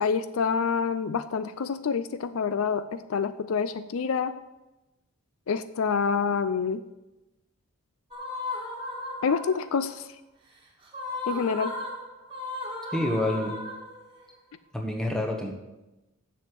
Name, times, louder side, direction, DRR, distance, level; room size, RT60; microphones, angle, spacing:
voice 1, 0.0-4.4 5.5-6.8 9.2-10.1 11.3-11.7, left 5 dB, 70° left, 13 dB, 0.4 m, -27 dB
sound 1, 8.1-9.8 10.9-14.3, left 2 dB, 25° right, 2.0 m, -36 dB
voice 2, 12.9-13.5 14.7-15.5, left 1 dB, 5° left, 1 dB, 1.3 m, -27 dB
7.4 x 7.0 x 7.7 m, 1.0 s
head